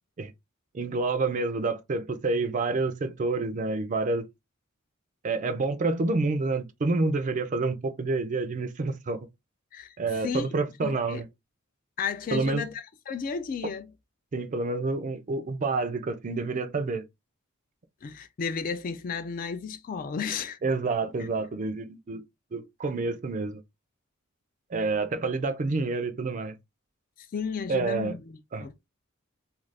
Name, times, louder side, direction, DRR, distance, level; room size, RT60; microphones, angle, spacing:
voice 1, 0.7-4.3 5.2-9.2 10.0-11.3 12.3-12.6 14.3-17.1 20.6-22.2 22.5-23.6 24.7-26.5 27.7-28.1 28.5-28.7, right 3 dB, 35° right, 0.4 m, -28 dB
voice 2, 10.8-11.2 12.0-13.9 18.0-20.6 27.3-28.7, left 6 dB, 40° left, 0.3 m, -33 dB
2.4 x 2.3 x 3.2 m
head